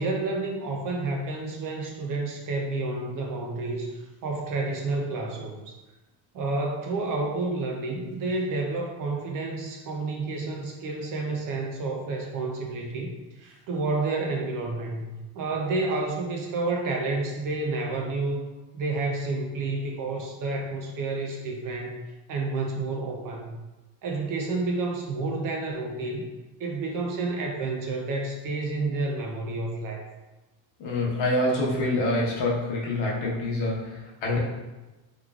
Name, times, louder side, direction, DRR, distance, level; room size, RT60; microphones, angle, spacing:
voice 1, 0.0-5.8 6.3-18.4 18.7-22.0 22.3-23.6 24.0-26.3 26.6-30.0, right 3 dB, 45° right, 1 dB, 0.5 m, -30 dB
voice 2, 30.8-34.4, left 1 dB, 70° left, -3 dB, 1.0 m, -26 dB
3.6 x 3.1 x 2.3 m, 1.1 s
cardioid pair, 170°, 47 cm